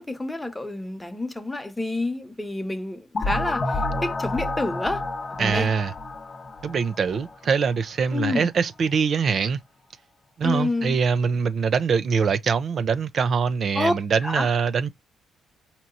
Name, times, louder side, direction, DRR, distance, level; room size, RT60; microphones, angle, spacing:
voice 1, 0.0-5.0 5.4-5.7 8.1-8.5 10.4-10.9 13.7-13.9 14.2-14.5, left 2 dB, 10° left, 0.9 m, -28 dB
sound 1, 3.1-7.8, left 2 dB, 40° left, 0.9 m, -30 dB
voice 2, 5.4-5.9 6.6-9.6 10.4-14.9, right 6 dB, 55° right, 0.4 m, -23 dB
4.5 x 2.9 x 2.5 m
cardioid pair, 90°, 0 cm